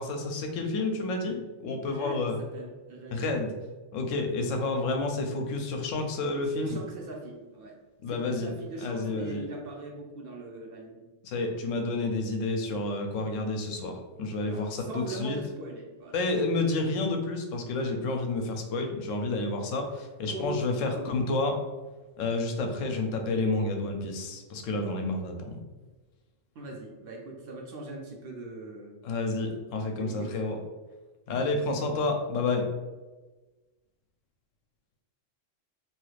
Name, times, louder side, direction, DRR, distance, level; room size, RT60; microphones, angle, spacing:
voice 1, 0.0-2.4 3.1-3.5 3.9-6.8 8.0-8.5 8.8-9.4 11.2-15.4 16.1-21.6 22.2-25.6 29.0-30.6 31.3-32.7, left 3 dB, 80° left, 4 dB, 0.9 m, -30 dB
voice 2, 1.9-3.2 6.5-7.8 8.1-11.0 14.4-16.2 20.3-20.6 20.9-21.2 26.6-29.0 30.0-30.6, right 1 dB, 60° right, 0 dB, 0.6 m, -40 dB
2.9 x 2.4 x 3.1 m, 1.2 s
omnidirectional pair, 1.3 m